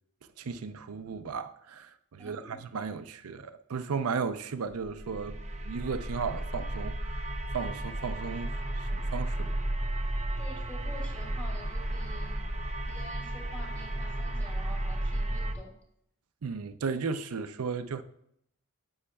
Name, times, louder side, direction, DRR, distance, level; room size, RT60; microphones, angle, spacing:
voice 1, 0.4-9.6 16.4-18.0, right 5 dB, 75° right, 0.5 m, -35 dB
voice 2, 2.2-2.6 10.4-12.4 12.8-15.7, equal, 5° left, 2.6 m, -48 dB
sound 1, 4.9-15.5, right 1 dB, 30° right, 0.7 m, -33 dB
9.8 x 7.9 x 2.2 m
head